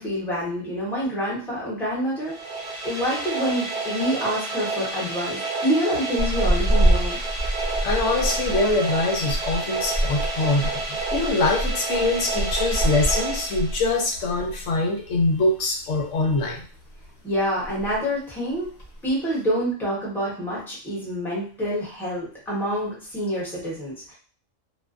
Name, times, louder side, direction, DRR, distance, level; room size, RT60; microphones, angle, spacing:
voice 1, 0.0-2.4 2.8-7.2 17.2-18.7 19.0-24.2, equal, ahead, -7 dB, 0.8 m, -27 dB
sound 1, 2.2-14.1, right 3 dB, 45° right, 0.8 m, -30 dB
sound 2, 6.2-14.7 15.0-15.2 15.6-16.4 16.7-17.1 17.4-17.5 17.6-18.1 18.6-19.1, right 1 dB, 35° left, 0.8 m, -26 dB
voice 2, 7.8-16.6, left 2 dB, 70° left, 2 dB, 0.9 m, -23 dB
2.4 x 2.2 x 2.4 m, 0.40 s
omnidirectional pair, 1.4 m